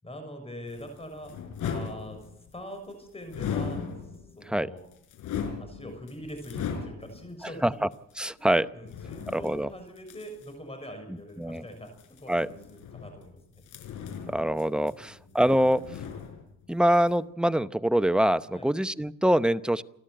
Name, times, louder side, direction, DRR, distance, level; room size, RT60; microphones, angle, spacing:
voice 1, 0.0-1.3 1.6-2.2 2.5-3.8 4.4-4.8 5.6-7.8 8.4-11.9 12.2-13.6 14.9-15.4 18.5-18.7, equal, 20° left, 6 dB, 6.5 m, -43 dB
sound 1, 0.7-2.6 3.3-4.4 4.8-7.3 7.9-8.0 8.8-10.5 11.9-13.3 13.6-15.2 15.5-16.7 16.9-17.1, left 6 dB, 80° left, 4.8 m, -37 dB
voice 2, 8.2-8.7 9.3-9.7 11.1-11.7 12.3-12.5 14.3-15.9 16.7-19.8, equal, 5° right, 13 dB, 0.8 m, -24 dB
28.5 x 12.0 x 8.9 m, 0.79 s
cardioid pair, 90°, 30 cm